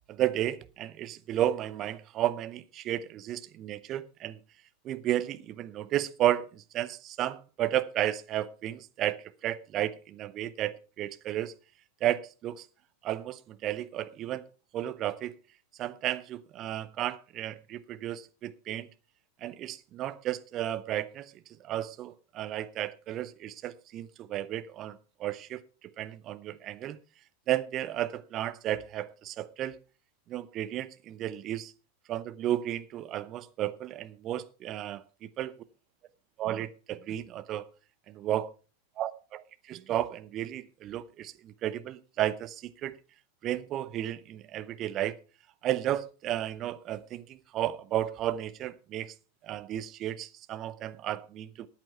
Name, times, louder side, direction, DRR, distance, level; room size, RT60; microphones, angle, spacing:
voice 1, 0.1-4.4 4.8-11.5 12.0-12.7 13.0-14.4 14.7-15.4 15.8-18.9 19.4-21.3 21.6-25.6 26.0-27.0 27.5-29.8 30.3-31.7 32.1-35.0 35.4-35.5 36.4-37.6 38.1-38.5 39.0-42.9 43.4-45.2 45.6-49.1 49.4-51.7, right 12 dB, 35° right, 0.9 m, -33 dB
13.5 x 9.1 x 4.5 m
figure-of-eight pair, 90°, 0 cm